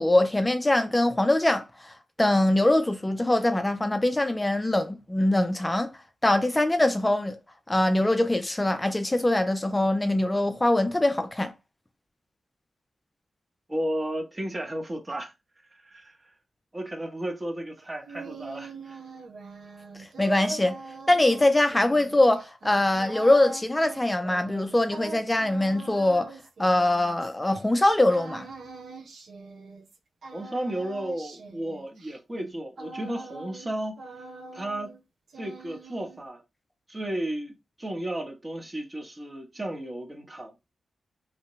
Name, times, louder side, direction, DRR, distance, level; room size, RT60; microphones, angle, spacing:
voice 1, 0.0-5.9 6.2-7.4 7.7-11.5 20.0-20.8 21.1-28.5, left 1 dB, 20° left, 0.3 m, -23 dB
voice 2, 13.7-15.3 15.8-16.3 16.7-19.0 30.3-34.0 34.5-34.9 35.4-36.4 36.9-40.5, right 1 dB, 30° right, 0.9 m, -33 dB
sound 1, 17.8-27.6 28.1-30.0 30.2-33.7 34.0-35.0 35.3-36.3, right 3 dB, 70° right, 0.6 m, -43 dB
2.8 x 2.1 x 3.0 m
cardioid pair, 45°, 0 cm